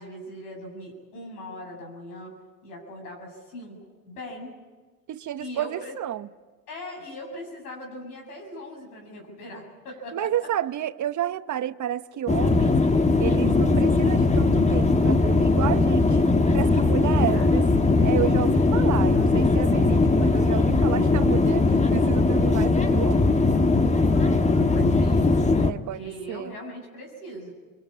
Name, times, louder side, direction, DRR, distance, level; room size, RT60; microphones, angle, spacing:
voice 1, 0.0-2.3 2.6-3.8 4.1-4.5 5.4-6.0 6.7-10.3 17.1-17.5 24.1-27.5, left 1 dB, 90° left, 7.5 m, -40 dB
voice 2, 5.1-6.3 10.1-12.9 13.2-16.2 16.5-23.4 25.6-26.5, right 11 dB, 40° right, 0.9 m, -31 dB
sound 1, 12.3-25.7, left 3 dB, 15° left, 1.3 m, -20 dB
25.0 x 22.5 x 8.6 m
hypercardioid pair, 75°, 45 cm